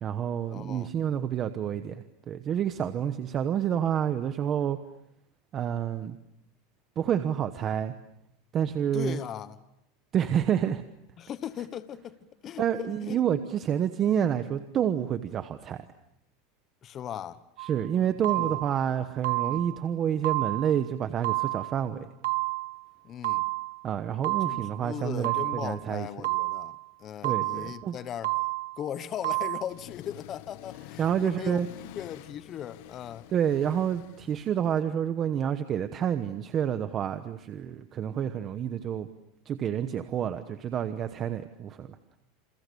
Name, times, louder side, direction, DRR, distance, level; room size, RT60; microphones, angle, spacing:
voice 1, 0.0-4.8 5.5-6.2 7.0-7.9 8.5-9.2 10.1-10.8 12.6-15.8 17.6-22.1 23.8-26.1 27.2-28.0 31.0-31.7 33.3-39.1 39.5-41.9, right 9 dB, 25° right, 1.1 m, -28 dB
voice 2, 0.5-0.9 8.9-9.6 11.2-12.2 12.4-13.2 16.8-17.4 18.4-18.6 19.4-19.6 23.0-23.4 24.4-28.3 28.8-31.6 31.9-33.3, left 10 dB, 25° left, 1.1 m, -38 dB
sound 1, 17.6-17.8 18.2-18.8 19.2-19.8 20.2-20.8 21.2-21.8 22.2-22.8 23.2-23.8 24.2-24.8 25.2-25.8 26.2-26.8 27.2-27.8 28.2-28.8 29.2-29.6, right 24 dB, 75° right, 1.4 m, -30 dB
Accelerating revving vroom, 29.6-34.8, left 15 dB, 60° left, 1.3 m, -48 dB
29.0 x 28.5 x 6.9 m
supercardioid pair, 160°, 0 cm